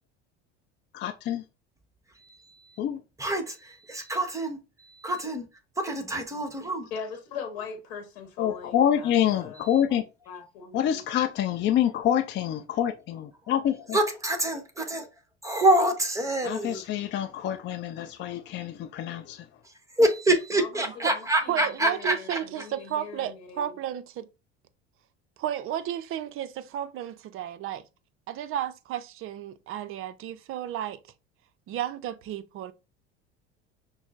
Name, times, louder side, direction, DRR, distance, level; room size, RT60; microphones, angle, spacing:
voice 1, 0.9-1.4 2.8-3.0 8.4-10.1 10.7-14.0 16.4-19.4, left 10 dB, 35° left, 0.4 m, -27 dB
voice 2, 2.2-2.8 3.2-5.5 5.8-6.9 13.9-15.1 15.4-16.8 20.0-22.4, right 1 dB, 10° right, 0.9 m, -26 dB
voice 3, 6.9-9.7 10.3-11.0 20.5-23.8, left 6 dB, 75° left, 0.9 m, -41 dB
voice 4, 20.8-21.1 21.5-24.3 25.4-27.8 28.3-31.0 31.7-32.7, right 11 dB, 40° right, 0.5 m, -33 dB
6.0 x 2.0 x 2.4 m
hypercardioid pair, 80°, 32 cm